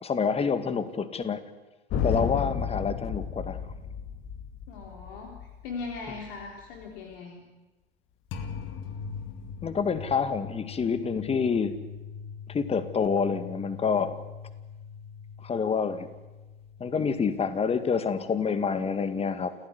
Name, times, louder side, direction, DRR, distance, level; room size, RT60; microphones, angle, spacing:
voice 1, 0.0-1.4 2.0-3.6 9.6-11.7 12.5-14.2 15.4-16.1 16.8-19.6, left 6 dB, 20° left, 12 dB, 2.0 m, -27 dB
sound 1, 1.9-7.0 8.3-18.3, left 7 dB, 40° left, 2.5 m, -37 dB
voice 2, 4.7-5.4 5.6-7.4, left 4 dB, 55° left, 1 dB, 3.6 m, -39 dB
29.0 x 15.0 x 9.7 m, 1.1 s
figure-of-eight pair, 90°, 31 cm